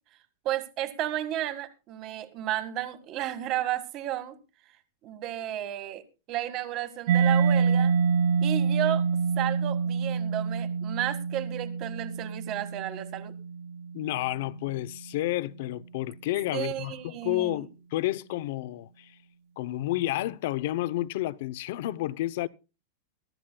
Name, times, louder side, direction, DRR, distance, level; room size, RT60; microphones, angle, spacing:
voice 1, 0.4-4.3 5.0-7.9 8.4-9.0 9.4-13.3 16.5-17.7, right 12 dB, 30° right, 1.7 m, -33 dB
Mallet percussion, 7.1-14.6, right 6 dB, 45° right, 0.6 m, -27 dB
voice 2, 13.9-19.1 19.6-22.5, left 16 dB, 50° left, 0.7 m, -30 dB
22.5 x 13.0 x 2.3 m
supercardioid pair, 170°, 0 cm